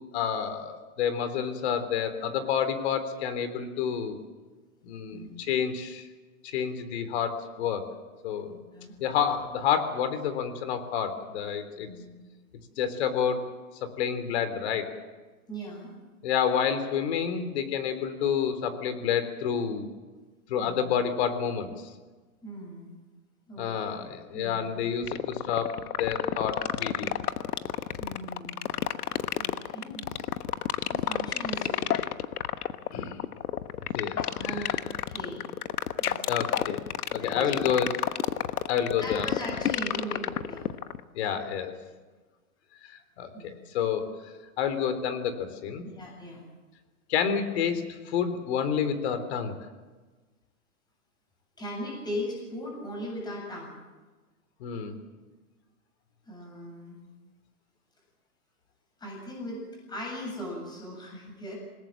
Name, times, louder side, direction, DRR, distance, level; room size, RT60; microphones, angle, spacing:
voice 1, 0.1-4.2 4.8-6.1 6.4-7.9 8.2-8.5 9.0-11.9 12.8-13.5 14.0-14.9 16.2-19.9 20.5-21.7 23.6-27.1 32.9-33.2 33.9-34.2 34.5-34.7 36.3-36.8 37.1-37.9 38.7-39.3 41.1-41.7 42.9-44.1 44.6-45.9 47.1-49.5 54.6-54.9, left 8 dB, 45° left, 10 dB, 3.7 m, -29 dB
voice 2, 5.1-5.4 8.5-8.9 11.8-12.1 15.5-15.9 20.6-20.8 22.4-22.9 23.5-23.8 24.3-24.7 28.0-28.7 29.3-30.1 30.5-32.1 34.1-34.8 35.1-35.5 36.0-36.6 37.1-37.8 39.0-40.7 43.3-43.5 45.9-46.4 51.6-53.7 56.3-57.0 59.0-61.6, equal, 10° left, -1 dB, 7.6 m, -39 dB
sound 1, 25.0-41.0, left 10 dB, 90° left, 1.3 m, -29 dB
26.5 x 19.5 x 7.7 m, 1.3 s
hypercardioid pair, 160°, 44 cm